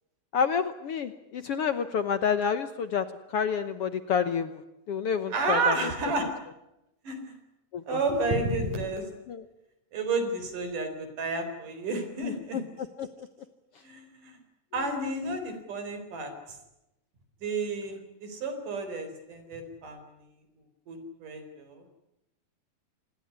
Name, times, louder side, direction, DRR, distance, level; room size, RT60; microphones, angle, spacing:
voice 1, 0.3-3.0 3.3-4.5 4.9-5.8 7.7-8.0 9.3-9.4 12.2-12.6 13.0-13.1 14.9-15.0, left 7 dB, 60° left, 11 dB, 1.6 m, -28 dB
voice 2, 5.3-6.3 7.0-7.4 7.9-9.1 9.9-12.6 13.8-14.4 14.7-16.6 17.4-20.0 20.9-21.8, right 3 dB, 75° right, 8 dB, 5.7 m, -31 dB
26.5 x 20.0 x 9.7 m, 0.89 s
omnidirectional pair, 3.7 m